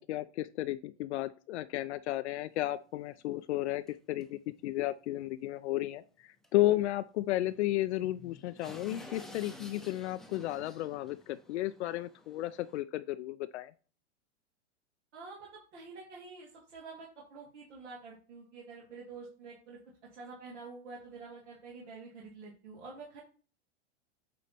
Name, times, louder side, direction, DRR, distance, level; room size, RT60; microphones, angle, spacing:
voice 1, 0.0-6.0 6.5-13.7, left 15 dB, 70° left, 11 dB, 0.5 m, -33 dB
sound 1, 2.5-2.6 3.1-3.2 3.9-4.0 4.2-4.3 4.6-4.7 6.4-6.5 6.8-6.9 7.5-12.8, left 1 dB, ahead, 0.7 m, -51 dB
voice 2, 15.1-19.8 20.1-23.2, right 4 dB, 75° right, -4 dB, 2.3 m, -48 dB
8.4 x 3.2 x 4.2 m, 0.38 s
hypercardioid pair, 125°, 35 cm